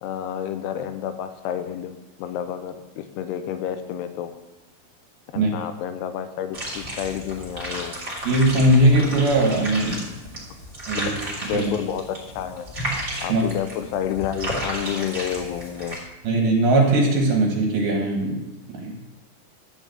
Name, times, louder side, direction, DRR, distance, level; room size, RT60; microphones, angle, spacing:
voice 1, 0.0-1.9 2.2-4.3 5.3-8.0 11.5-12.7 13.2-16.0, left 9 dB, 85° left, 9 dB, 2.6 m, -30 dB
sound 1, 6.5-16.0, equal, 25° right, 1.9 m, -33 dB
voice 2, 8.2-10.1 10.9-11.1 11.5-11.7 13.3-13.5 16.2-19.0, right 1 dB, 65° right, 0 dB, 3.1 m, -20 dB
11.0 x 4.9 x 7.8 m, 1.1 s
omnidirectional pair, 4.9 m